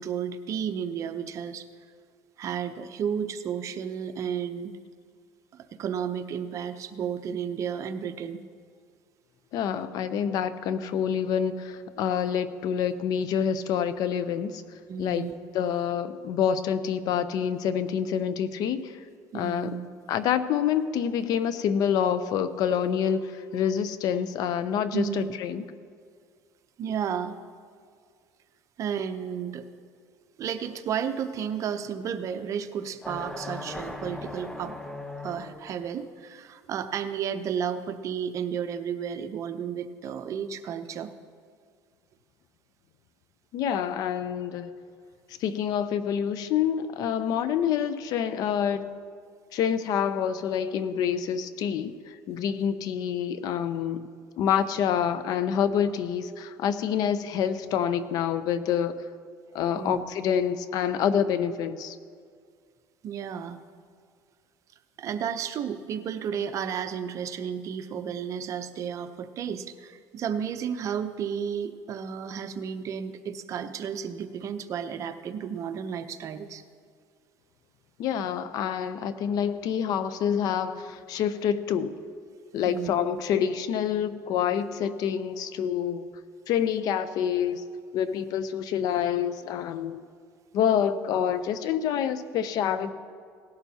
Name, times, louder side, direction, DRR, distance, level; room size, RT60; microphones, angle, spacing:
voice 1, 0.0-1.7 2.4-4.7 5.5-8.4 14.9-15.3 19.3-19.9 24.9-25.3 26.8-27.4 28.8-29.7 30.4-34.7 35.2-41.1 59.8-60.0 63.0-63.6 65.0-76.6 82.6-82.9, right 8 dB, 45° right, 9 dB, 0.7 m, -32 dB
voice 2, 9.5-14.6 15.0-18.9 19.3-19.7 20.1-25.6 43.5-44.7 45.4-48.8 49.5-54.1 54.4-59.0 59.5-62.0 78.0-81.9 82.5-86.1 86.5-87.6 87.9-90.0 90.5-92.9, left 8 dB, 60° left, 13 dB, 0.6 m, -27 dB
sound 1, 33.0-35.9, left 2 dB, 10° left, 0.7 m, -38 dB
17.5 x 11.5 x 2.8 m, 2.1 s
cardioid pair, 115°, 7 cm